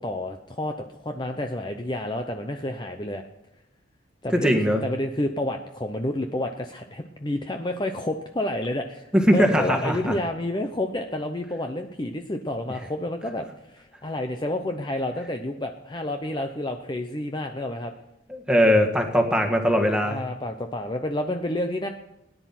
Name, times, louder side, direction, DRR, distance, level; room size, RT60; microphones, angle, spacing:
voice 1, 0.0-3.2 4.2-17.9 20.0-21.9, left 1 dB, 25° left, 5 dB, 0.7 m, -30 dB
voice 2, 4.4-4.8 9.1-10.2 18.3-20.2, equal, 5° right, 3 dB, 1.8 m, -20 dB
17.5 x 10.5 x 5.9 m, 0.87 s
head